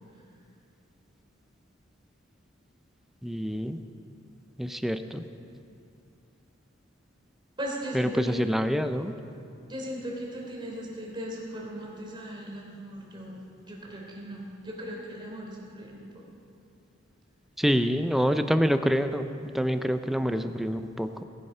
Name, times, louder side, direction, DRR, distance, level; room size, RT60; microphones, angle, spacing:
voice 1, 3.2-3.8 4.6-5.3 7.9-9.1 17.6-21.2, equal, ahead, 9 dB, 0.5 m, -26 dB
voice 2, 7.6-8.4 9.7-16.1, equal, 25° right, -2 dB, 3.2 m, -38 dB
19.0 x 9.9 x 5.6 m, 2.6 s
head